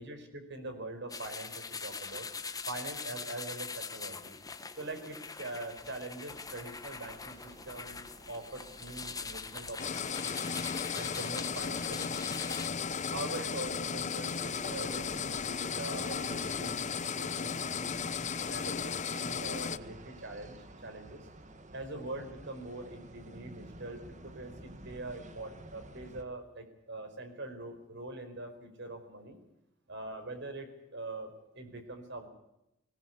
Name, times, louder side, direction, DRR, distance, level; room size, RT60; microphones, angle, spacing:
voice 1, 0.0-2.3 2.7-4.4 4.8-10.5 10.9-12.5 13.1-17.9 18.5-21.3 21.7-29.4 29.9-32.3, right 2 dB, 60° right, 7 dB, 4.7 m, -43 dB
sound 1, 1.1-12.7, left 5 dB, 20° left, 1.3 m, -43 dB
sound 2, 6.3-26.2, right 2 dB, 40° right, 1.9 m, -51 dB
sound 3, 9.8-19.8, left 6 dB, 35° left, 0.8 m, -35 dB
20.0 x 19.5 x 8.0 m, 0.85 s
head